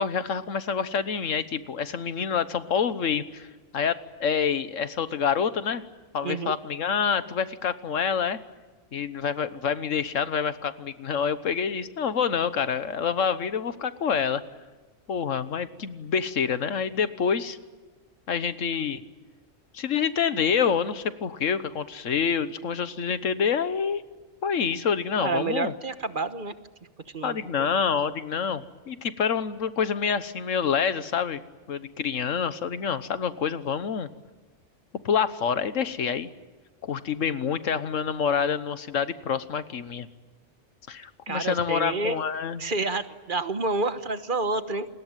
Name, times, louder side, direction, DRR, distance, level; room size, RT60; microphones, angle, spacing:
voice 1, 0.0-3.5 3.7-5.8 6.1-8.4 8.9-14.4 15.1-17.6 18.3-19.0 19.7-24.0 24.4-25.7 27.2-31.4 31.7-34.1 35.0-36.3 36.8-40.1 40.9-42.6, left 7 dB, 90° left, 13 dB, 1.5 m, -27 dB
voice 2, 6.2-6.5 25.2-26.5 27.1-27.7 41.3-42.2 42.6-44.9, right 3 dB, 45° right, 11 dB, 1.3 m, -29 dB
28.5 x 20.5 x 9.1 m, 1.3 s
omnidirectional pair, 1.3 m